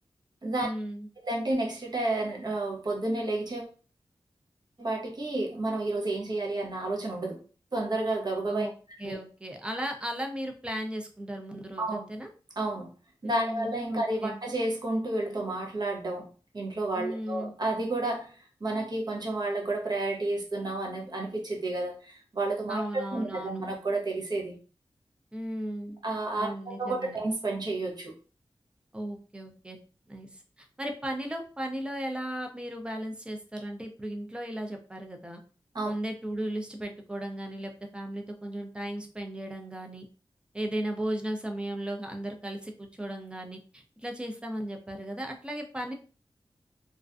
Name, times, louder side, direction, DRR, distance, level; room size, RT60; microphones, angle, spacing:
voice 1, 0.6-1.1 8.5-8.7 9.0-12.3 13.2-14.4 16.9-17.5 22.7-23.6 25.3-26.0 26.4-27.2 28.9-29.8 30.1-35.4 35.8-40.1 40.5-45.9, right 1 dB, 10° right, 3 dB, 0.5 m, -36 dB
voice 2, 1.2-3.7 4.8-7.4 7.7-9.2 11.8-12.0 12.6-12.9 13.2-24.6 26.0-28.1 35.7-35.9, right 2 dB, 50° right, 0 dB, 0.7 m, -31 dB
2.4 x 2.2 x 2.4 m, 0.37 s
wide cardioid pair, 85°, 9 cm